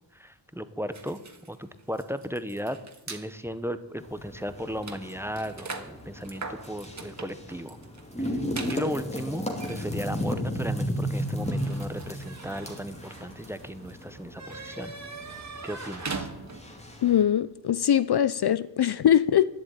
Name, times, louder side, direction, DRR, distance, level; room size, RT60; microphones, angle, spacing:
voice 1, 0.1-1.2 1.5-2.8 3.1-7.8 8.2-8.3 8.7-14.9 15.6-16.3, equal, 5° right, 0.8 m, -35 dB
sound 1, 0.9-3.3 4.0-4.1 4.4-16.8, right 4 dB, 35° right, 1.7 m, -42 dB
sound 2, 4.0-17.2, equal, 15° left, 2.4 m, -35 dB
voice 2, 17.0-19.5, left 10 dB, 55° left, 0.6 m, -22 dB
12.0 x 11.0 x 8.9 m
wide cardioid pair, 140°, 47 cm